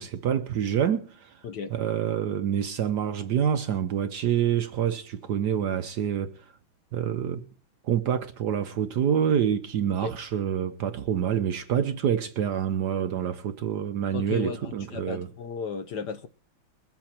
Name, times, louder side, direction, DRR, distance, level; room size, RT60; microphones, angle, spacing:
voice 1, 0.0-1.4 1.7-6.5 6.9-7.5 7.8-15.3, right 9 dB, 65° right, 1.2 m, -27 dB
voice 2, 1.4-1.7 10.0-10.1 14.1-16.3, left 6 dB, 60° left, 1.3 m, -35 dB
22.0 x 8.0 x 4.4 m
omnidirectional pair, 2.4 m